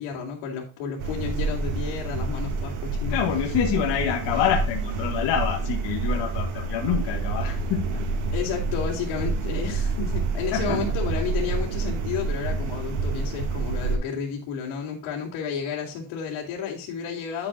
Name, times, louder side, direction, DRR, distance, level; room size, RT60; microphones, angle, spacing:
voice 1, 0.0-3.2 8.3-17.5, left 7 dB, 75° left, -4 dB, 3.4 m, -32 dB
sound 1, 1.0-14.0, right 3 dB, 70° right, 2.7 m, -28 dB
voice 2, 3.1-7.8 10.5-10.8, left 9 dB, 60° left, 1 dB, 2.0 m, -26 dB
11.0 x 8.1 x 2.8 m, 0.33 s
cardioid pair, 160°, 49 cm